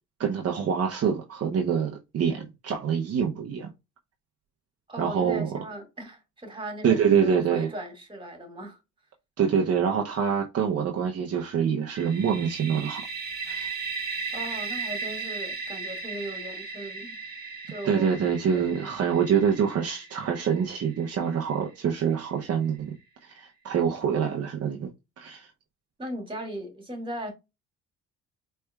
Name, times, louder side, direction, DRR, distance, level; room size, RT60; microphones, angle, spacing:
voice 1, 0.2-3.7 5.0-5.6 6.8-7.7 9.4-13.0 13.5-13.7 17.8-22.9 23.2-24.9 25.2-25.5, right 7 dB, 55° right, 0.8 m, -25 dB
voice 2, 4.9-8.8 14.3-17.2 17.7-18.2 18.5-18.9 26.0-27.3, right 1 dB, 15° right, 1.9 m, -38 dB
sound 1, 11.9-21.6, right 4 dB, 30° right, 1.4 m, -36 dB
4.4 x 3.3 x 2.3 m
cardioid pair, 90°, 30 cm